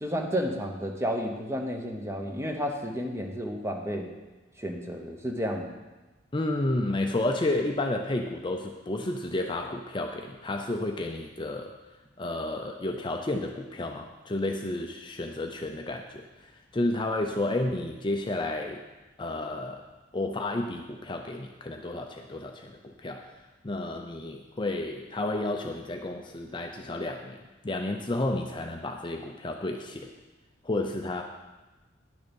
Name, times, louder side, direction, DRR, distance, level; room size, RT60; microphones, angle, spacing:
voice 1, 0.0-4.1 4.6-5.7, equal, 15° right, 3 dB, 0.9 m, -31 dB
voice 2, 6.3-11.8 12.2-18.8 19.2-19.9 20.1-23.3 23.6-27.4 27.6-30.1 30.6-31.2, left 2 dB, 25° left, 3 dB, 0.5 m, -31 dB
10.0 x 6.6 x 5.3 m, 1.2 s
head